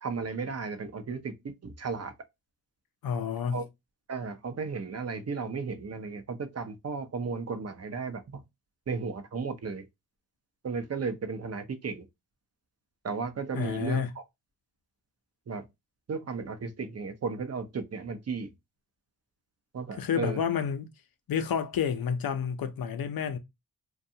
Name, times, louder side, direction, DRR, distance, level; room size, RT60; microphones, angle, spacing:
voice 1, 0.0-2.1 3.5-3.7 4.1-8.4 8.9-9.9 10.6-12.0 13.0-14.2 15.5-15.7 16.1-18.5 19.7-20.4, right 4 dB, 40° right, 0.7 m, -34 dB
voice 2, 3.0-3.6 13.5-14.1 20.0-20.9 21.3-23.4, left 7 dB, 60° left, 0.6 m, -29 dB
2.6 x 2.3 x 2.7 m
cardioid pair, 40°, 40 cm